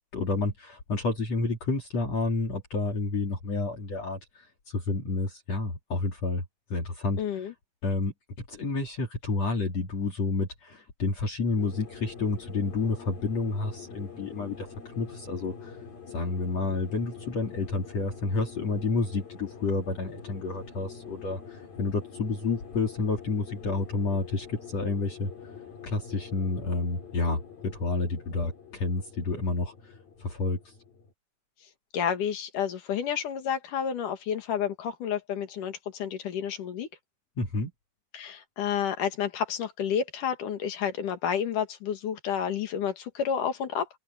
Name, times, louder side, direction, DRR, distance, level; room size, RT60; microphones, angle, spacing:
voice 1, 0.1-6.4 6.7-7.2 7.8-8.1 8.5-15.8 16.1-25.3 25.8-29.7 30.2-30.6 37.4-37.7, left 3 dB, 50° left, 3.8 m, -30 dB
voice 2, 7.2-7.5 31.9-36.9 38.1-43.9, left 8 dB, 65° left, 3.3 m, -30 dB
sound 1, 11.6-31.1, left 6 dB, 90° left, 8.1 m, -45 dB
open air
omnidirectional pair, 4.0 m